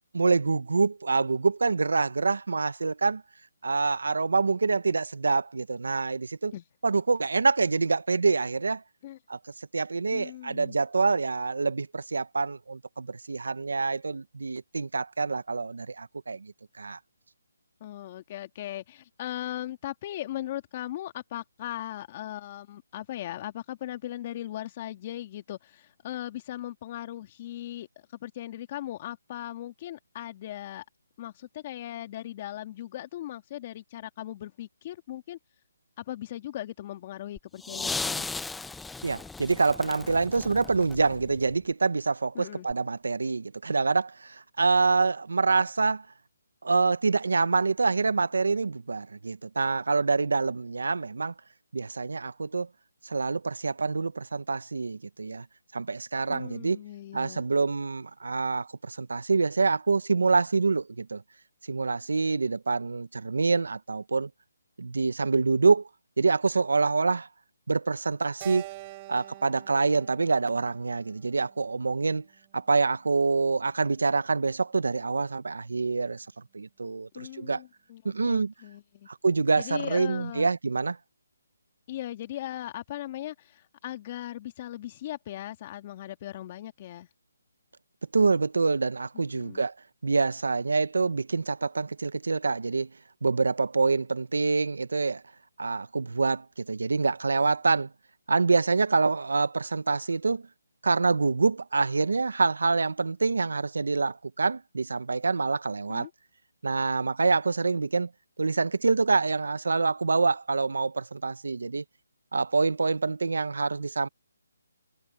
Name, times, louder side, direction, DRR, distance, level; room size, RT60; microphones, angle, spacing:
voice 1, 0.1-3.2 3.6-6.5 6.8-8.8 9.3-9.4 9.7-17.0 39.0-46.1 46.6-51.3 51.7-52.7 53.0-55.4 55.7-56.8 57.1-61.2 61.7-64.3 64.8-65.9 66.2-67.3 67.7-68.7 69.1-72.3 72.5-76.3 76.5-77.6 78.0-78.5 79.1-81.0 88.1-89.7 90.0-92.9 93.2-95.2 95.6-97.9 98.3-100.4 100.8-106.1 106.6-108.1 108.4-111.8 112.3-114.1, right 4 dB, 80° right, 1.0 m, -26 dB
voice 2, 10.1-10.8 17.8-27.9 28.2-30.8 31.2-35.4 36.0-38.3 42.3-42.7 56.3-57.4 77.1-79.1 79.6-80.5 81.9-87.1 89.1-89.6 105.9-106.1, left 13 dB, 30° left, 2.4 m, -38 dB
sound 1, 37.4-41.5 42.7-42.8, left 3 dB, 5° left, 0.7 m, -36 dB
Keyboard (musical), 68.4-72.8, right 20 dB, 25° right, 7.9 m, -46 dB
hypercardioid pair, 160°, 0 cm